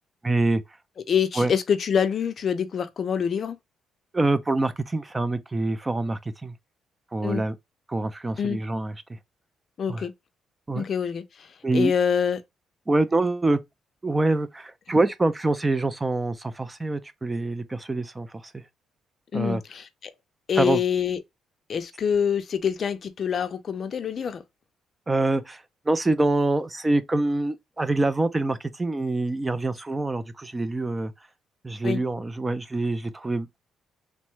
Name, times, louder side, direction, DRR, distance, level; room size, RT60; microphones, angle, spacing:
voice 1, 0.2-0.6 1.4-1.5 4.1-6.5 7.1-7.5 7.9-8.9 9.9-10.0 10.7-10.9 11.6-11.9 12.9-13.6 14.0-18.3 18.5-18.6 19.3-19.6 20.6-20.8 25.1-31.1 31.6-33.5, right 2 dB, 15° right, 0.3 m, -25 dB
voice 2, 1.1-3.6 7.2-7.4 8.4-8.6 9.8-10.1 10.7-12.4 19.3-20.1 20.5-21.2 21.7-24.4 31.8-32.0, left 7 dB, 45° left, 0.5 m, -26 dB
3.0 x 2.1 x 3.0 m
cardioid pair, 110°, 0 cm